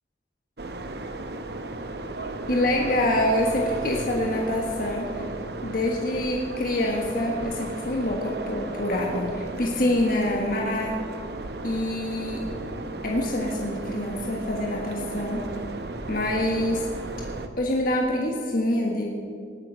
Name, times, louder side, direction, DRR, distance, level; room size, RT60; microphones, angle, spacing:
sound 1, 0.6-17.5, right 2 dB, 60° right, 0.9 m, -35 dB
voice 1, 2.5-5.2 5.6-11.0 11.6-12.4 13.0-15.4 16.1-16.9 17.6-19.0, left 1 dB, 50° left, 0 dB, 1.4 m, -26 dB
19.0 x 7.8 x 6.3 m, 2.4 s
head